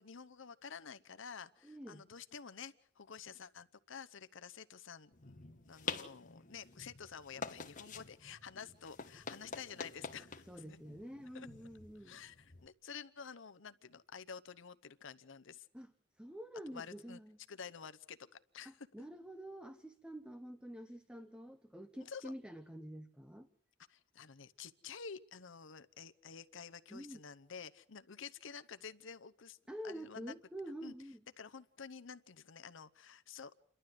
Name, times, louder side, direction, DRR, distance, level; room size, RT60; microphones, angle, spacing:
voice 1, 0.0-10.8 11.3-11.5 12.0-15.7 16.7-17.2 17.5-18.3 18.5-18.9 22.0-22.3 23.9-29.6 29.8-30.4 30.8-30.9 31.4-33.5, left 6 dB, 65° left, 0.8 m, -50 dB
voice 2, 1.6-2.1 10.5-12.2 15.7-15.9 16.2-17.4 18.6-23.5 26.9-27.2 29.7-31.2, equal, 5° right, 0.9 m, -48 dB
sound 1, 5.1-12.7, left 5 dB, 40° left, 1.4 m, -48 dB
29.0 x 12.0 x 7.8 m
head